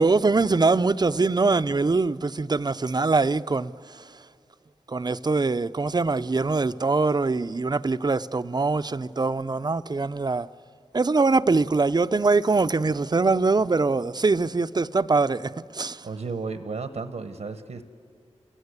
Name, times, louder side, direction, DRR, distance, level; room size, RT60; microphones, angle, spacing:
voice 1, 0.0-4.1 4.9-10.5 10.9-16.1, right 3 dB, 35° right, 0.5 m, -23 dB
voice 2, 16.0-17.8, right 4 dB, 80° right, 1.0 m, -33 dB
29.0 x 16.5 x 8.2 m
cardioid pair, 55°, 12 cm